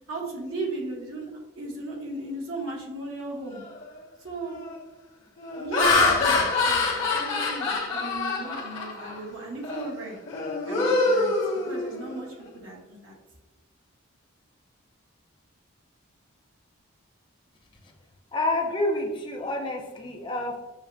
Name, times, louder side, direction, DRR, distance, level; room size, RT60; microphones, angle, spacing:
voice 1, 0.1-3.6 4.2-4.6 5.6-10.2 10.6-13.1, right 2 dB, 70° right, -2 dB, 1.0 m, -36 dB
Laughter, 3.6-3.9 4.5-4.8 5.4-9.2 9.6-9.9 10.3-12.2, left 3 dB, 65° left, 0.9 m, -25 dB
voice 2, 18.3-20.6, left 2 dB, 20° left, 1 dB, 0.5 m, -28 dB
6.3 x 2.1 x 2.5 m, 1.1 s
head